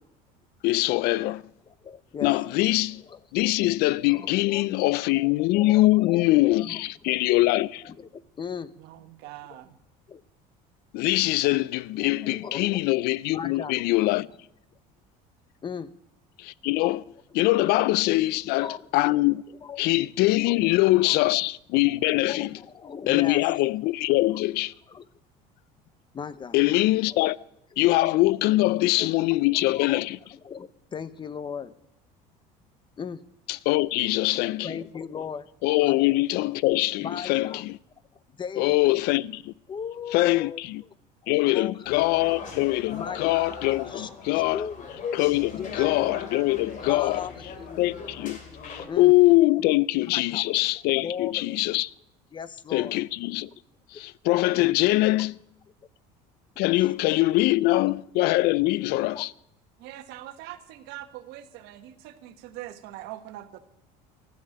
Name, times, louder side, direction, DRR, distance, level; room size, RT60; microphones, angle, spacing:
voice 1, 0.6-1.4 2.2-3.0 3.3-7.8 10.9-14.3 16.4-17.0 17.3-19.4 19.8-22.5 23.1-24.7 26.5-27.4 27.8-30.2 33.5-34.8 35.6-37.8 38.6-39.5 40.1-40.8 41.3-44.7 45.1-47.2 47.8-48.4 48.7-51.9 52.7-53.5 53.9-55.4 56.6-59.3, left 19 dB, 65° left, 0.4 m, -23 dB
voice 2, 1.7-2.6 3.0-3.2 4.1-4.7 5.0-5.1 5.5-7.2 7.5-8.7 9.5-9.6 10.1-10.2 12.0-12.8 13.3-13.7 15.6-15.9 18.3-19.2 19.5-19.8 20.4-21.2 22.3-23.4 24.9-25.1 26.1-26.6 27.1-27.2 28.5-28.7 29.0-31.7 33.0-33.2 34.3-35.5 35.8-36.0 37.0-37.6 38.3-39.0 39.7-40.9 41.5-42.3 42.9-43.4 43.9-44.9 45.6-45.9 46.7-47.9 48.7-49.1 49.6-49.8 50.1-50.6 51.0-51.6 52.3-53.0 54.5-54.7 56.8-56.9 57.7-58.0 59.0-59.2, left 6 dB, 25° left, 0.7 m, -38 dB
voice 3, 8.8-9.7 59.8-63.6, right 14 dB, 70° right, 1.4 m, -42 dB
sound 1, 41.8-48.8, left 5 dB, 45° left, 3.0 m, -39 dB
13.5 x 7.5 x 9.8 m
supercardioid pair, 115°, 18 cm